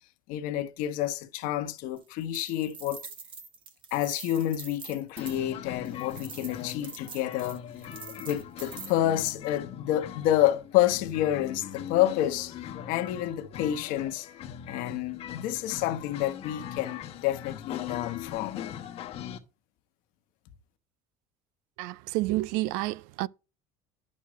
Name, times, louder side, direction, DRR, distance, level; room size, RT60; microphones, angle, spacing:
voice 1, 0.3-3.0 3.9-7.7 8.2-12.5 12.8-14.3 14.7-18.7, left 13 dB, 60° left, 1.2 m, -29 dB
sound 1, 2.0-5.4 5.8-9.3, right 5 dB, 30° right, 1.4 m, -45 dB
sound 2, 5.2-19.4, left 9 dB, 40° left, 1.1 m, -41 dB
voice 2, 21.8-23.3, right 18 dB, 70° right, 0.4 m, -29 dB
11.0 x 6.5 x 3.0 m
cardioid pair, 160°, 16 cm